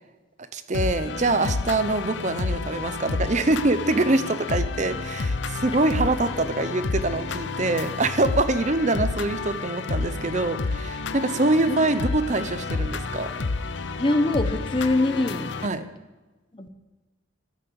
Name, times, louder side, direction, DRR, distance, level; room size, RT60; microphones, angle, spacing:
voice 1, 0.5-13.3 15.6-15.8, right 2 dB, 40° right, 12 dB, 0.9 m, -24 dB
sound 1, 0.7-15.7, left 3 dB, 70° left, 0.8 m, -30 dB
voice 2, 14.0-15.5 16.5-16.7, left 2 dB, 25° left, 7 dB, 1.0 m, -23 dB
12.5 x 12.0 x 7.0 m, 1.2 s
head